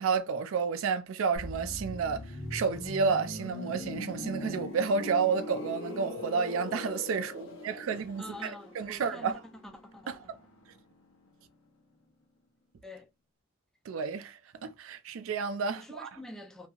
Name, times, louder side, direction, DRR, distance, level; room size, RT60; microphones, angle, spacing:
voice 1, 0.0-9.4 10.1-10.2 13.9-16.1, right 5 dB, 90° right, 0.4 m, -31 dB
sound 1, 1.3-11.0 11.3-11.5, left 2 dB, 70° left, 0.8 m, -41 dB
voice 2, 8.2-10.1 12.8-13.1 15.7-16.7, left 1 dB, 5° left, 0.4 m, -46 dB
2.8 x 2.6 x 2.3 m
head